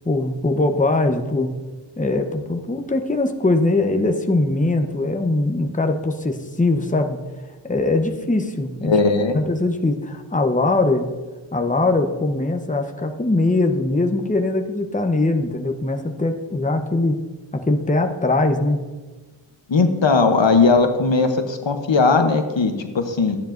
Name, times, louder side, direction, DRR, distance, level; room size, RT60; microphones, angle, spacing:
voice 1, 0.1-1.6 2.0-7.2 7.6-8.9 9.3-11.1 11.5-17.2 17.5-18.8, left 2 dB, 15° left, 5 dB, 0.9 m, -21 dB
voice 2, 8.8-9.4 19.7-23.4, left 4 dB, 70° left, 7 dB, 0.9 m, -18 dB
13.5 x 10.0 x 2.6 m, 1.3 s
wide cardioid pair, 40°, 46 cm